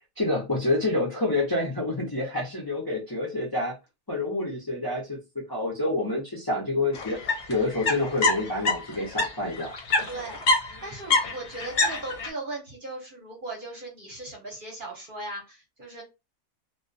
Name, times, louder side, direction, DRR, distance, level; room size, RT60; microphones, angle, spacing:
voice 1, 0.2-3.8 4.1-7.2 7.5-9.7, left 2 dB, 35° left, -4 dB, 0.3 m, -28 dB
sound 1, 6.9-9.3 9.6-12.3, left 3 dB, 55° left, 0.7 m, -25 dB
voice 2, 10.1-10.4 10.8-16.0, right 2 dB, 45° right, -1 dB, 0.7 m, -38 dB
2.2 x 2.2 x 2.5 m, 0.26 s
omnidirectional pair, 1.5 m